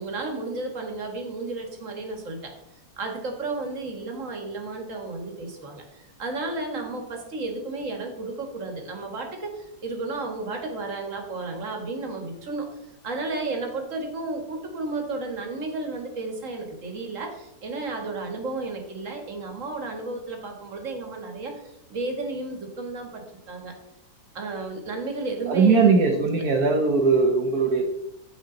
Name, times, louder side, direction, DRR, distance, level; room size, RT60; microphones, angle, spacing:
voice 1, 0.0-2.5 3.0-12.7 13.0-21.6 21.9-23.7 24.3-26.4, right 3 dB, 45° right, 3 dB, 1.9 m, -33 dB
voice 2, 25.5-27.9, right 4 dB, 60° right, 2 dB, 1.4 m, -20 dB
14.5 x 5.0 x 3.9 m, 0.88 s
omnidirectional pair, 1.9 m